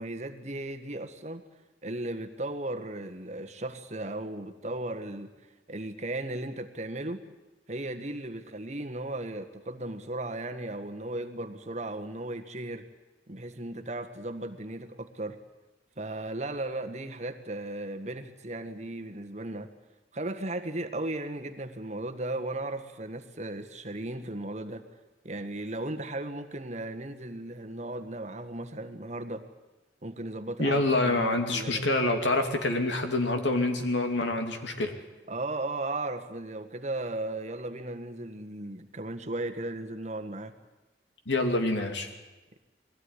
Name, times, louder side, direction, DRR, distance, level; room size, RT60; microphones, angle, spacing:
voice 1, 0.0-1.4 1.8-5.3 5.7-7.2 7.7-12.8 13.3-15.4 16.0-19.7 20.1-24.8 25.2-29.4 30.0-31.8 35.3-40.5, right 2 dB, 40° right, 7 dB, 1.5 m, -36 dB
voice 2, 30.6-34.9 41.3-42.1, left 2 dB, 85° left, 5 dB, 2.8 m, -26 dB
21.5 x 16.5 x 9.8 m, 1.1 s
head